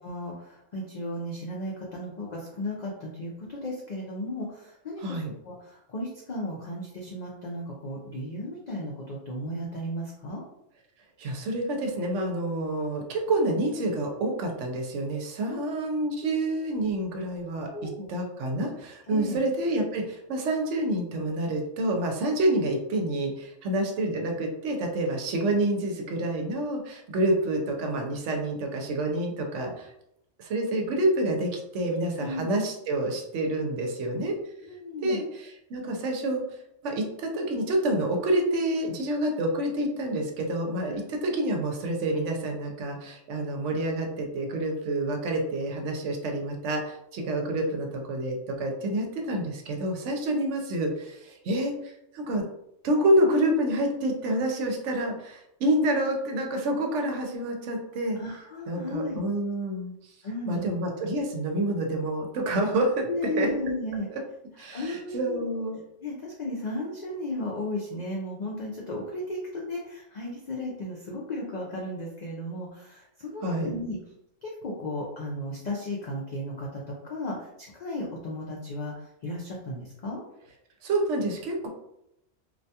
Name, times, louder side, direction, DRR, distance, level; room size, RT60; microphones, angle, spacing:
voice 1, 0.0-5.2 5.4-10.4 15.4-15.6 17.7-18.1 19.1-19.4 32.2-32.5 34.6-35.2 40.9-41.0 50.3-50.4 58.1-59.2 60.2-60.7 63.1-64.1 64.7-65.4 66.0-74.0 74.4-78.9 79.2-80.3, left 1 dB, 70° left, -3 dB, 0.4 m, -35 dB
voice 2, 5.0-5.3 11.2-29.9 30.4-34.4 35.0-36.4 36.8-52.4 52.8-58.2 58.7-59.9 60.5-63.0 63.4-63.5 64.1-64.2 64.6-65.8 73.4-73.7 80.8-81.7, right 1 dB, 75° right, 2 dB, 0.9 m, -28 dB
2.4 x 2.2 x 2.7 m, 0.80 s
omnidirectional pair, 1.3 m